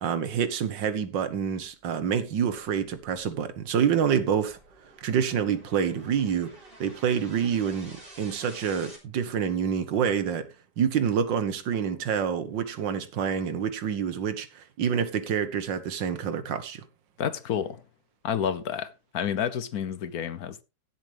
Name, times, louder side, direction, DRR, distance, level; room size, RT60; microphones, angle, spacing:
voice 1, 0.0-4.6 5.0-6.5 6.8-10.5 10.8-16.9, right 7 dB, 85° right, 1.9 m, -27 dB
sound 1, 2.8-9.0, right 1 dB, 30° right, 3.9 m, -51 dB
voice 2, 17.2-17.8 18.2-20.6, left 8 dB, 65° left, 1.1 m, -30 dB
17.0 x 7.6 x 3.4 m
omnidirectional pair, 1.9 m